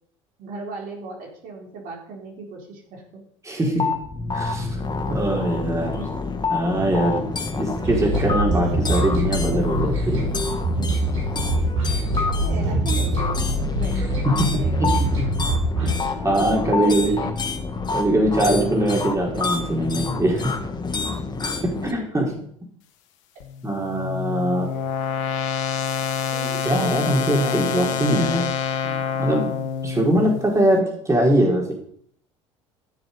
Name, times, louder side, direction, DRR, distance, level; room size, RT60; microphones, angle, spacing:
voice 1, 0.4-3.6 5.1-6.1 11.3-11.9 12.2-15.1 16.2-17.3 24.8-24.9 26.3-27.0 27.4-28.3, right 3 dB, 60° right, 0 dB, 4.1 m, -37 dB
voice 2, 3.4-3.9 4.3-4.7 5.1-5.9 6.5-7.2 7.6-10.3 12.5-12.7 14.2-15.2 15.8-17.1 17.9-20.5 21.6-22.2 23.6-24.7 26.6-28.5 28.8-29.5 29.8-31.7, right 1 dB, 20° right, 0 dB, 4.4 m, -22 dB
sound 1, 3.8-21.9, left 4 dB, 25° left, 2.0 m, -28 dB
sound 2, 7.8-15.9, right 1 dB, 75° right, 6.3 m, -24 dB
sound 3, 23.4-30.5, left 7 dB, 75° left, 1.4 m, -27 dB
15.0 x 7.1 x 5.4 m, 0.62 s
hypercardioid pair, 70°, 16 cm